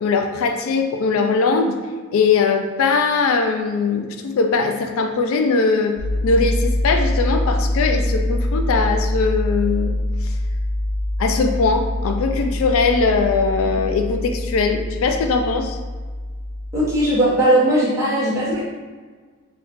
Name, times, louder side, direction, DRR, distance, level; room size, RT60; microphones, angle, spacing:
voice 1, 0.0-1.8 2.1-10.0 10.2-10.3 11.2-15.8, left 4 dB, 85° left, 5 dB, 0.3 m, -20 dB
sound 1, 6.0-17.0, left 1 dB, 55° right, 0.6 m, -24 dB
voice 2, 16.7-18.6, right 1 dB, 15° right, -8 dB, 0.8 m, -18 dB
3.5 x 2.3 x 2.9 m, 1.4 s
head